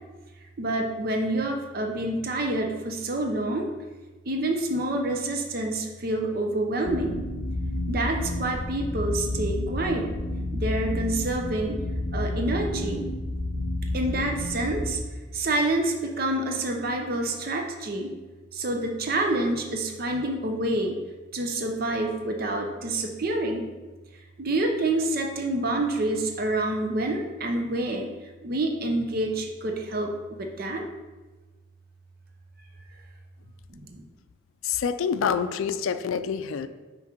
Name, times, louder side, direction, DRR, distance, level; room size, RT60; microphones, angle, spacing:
voice 1, 0.6-3.7 4.3-7.2 7.9-10.1 10.5-11.8 12.1-13.1 13.9-15.0 15.3-18.1 18.5-21.0 21.3-23.7 24.4-28.1 28.4-30.1 30.4-30.9 33.7-34.0, right 2 dB, 45° right, 3 dB, 0.7 m, -27 dB
sound 1, 6.8-15.0, left 1 dB, 35° left, 0.6 m, -30 dB
voice 2, 34.6-36.7, left 7 dB, 85° left, 10 dB, 0.4 m, -27 dB
5.9 x 5.3 x 4.5 m, 1.2 s
head